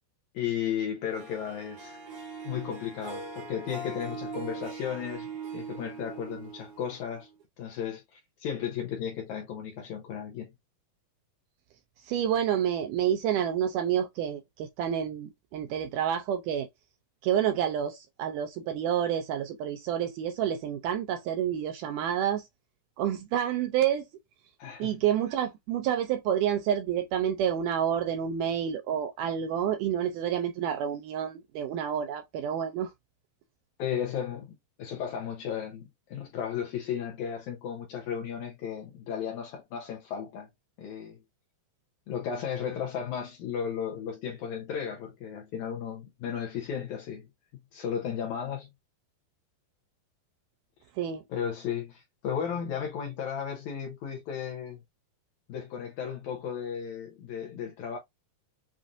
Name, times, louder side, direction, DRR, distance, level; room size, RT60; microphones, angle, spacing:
voice 1, 0.3-2.0 2.4-7.3 7.6-10.5 24.6-25.0 33.8-34.5 34.8-40.5 40.8-41.2 42.1-47.3 47.7-48.7 51.3-54.8 55.5-58.0, left 8 dB, 75° left, 1.8 m, -34 dB
Harp, 1.1-7.4, right 4 dB, 65° right, 1.5 m, -41 dB
voice 2, 12.1-16.7 17.2-22.4 23.0-24.1 24.8-32.9 51.0-51.2, right 9 dB, 80° right, 1.9 m, -29 dB
7.2 x 2.5 x 2.5 m
omnidirectional pair, 4.1 m